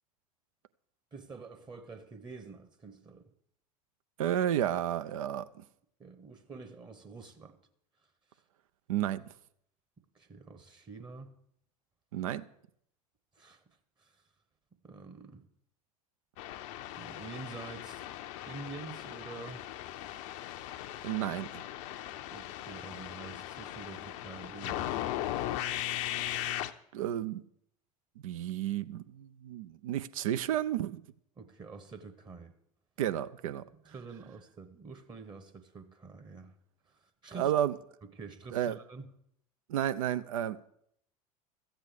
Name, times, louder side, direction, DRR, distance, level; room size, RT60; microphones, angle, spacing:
voice 1, 1.1-3.3 6.0-7.6 10.1-11.3 13.4-13.6 14.0-14.1 14.8-15.5 17.0-18.0 18.5-19.7 22.3-24.8 25.3-25.4 31.4-32.5 33.8-36.5 37.0-37.5 38.1-39.1, right 4 dB, 25° right, 1.2 m, -47 dB
voice 2, 4.2-5.6 8.9-9.3 12.1-12.4 21.0-21.6 26.9-27.4 28.2-31.0 33.0-33.6 37.4-37.7 38.5-38.8 39.7-40.7, right 11 dB, 60° right, 0.6 m, -32 dB
sound 1, 16.4-26.7, left 13 dB, 50° left, 0.7 m, -38 dB
14.0 x 8.1 x 6.7 m
figure-of-eight pair, 75°, 19 cm